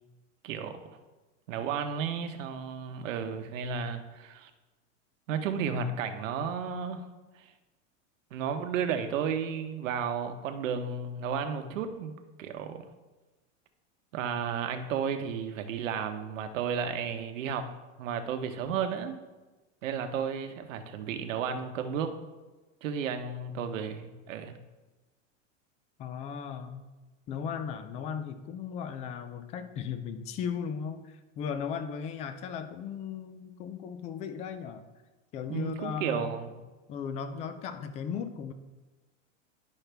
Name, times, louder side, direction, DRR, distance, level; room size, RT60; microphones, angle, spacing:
voice 1, 0.4-0.8 1.5-4.5 5.3-7.0 8.3-12.1 12.4-12.9 14.1-17.6 18.0-19.2 19.8-22.1 22.8-24.6 35.5-36.5, right 7 dB, 80° right, 7 dB, 1.0 m, -33 dB
voice 2, 26.0-26.8 27.3-34.8 35.3-36.4 36.9-38.5, left 7 dB, 20° left, 10 dB, 0.3 m, -36 dB
11.0 x 5.7 x 3.4 m, 1.2 s
supercardioid pair, 145°, 38 cm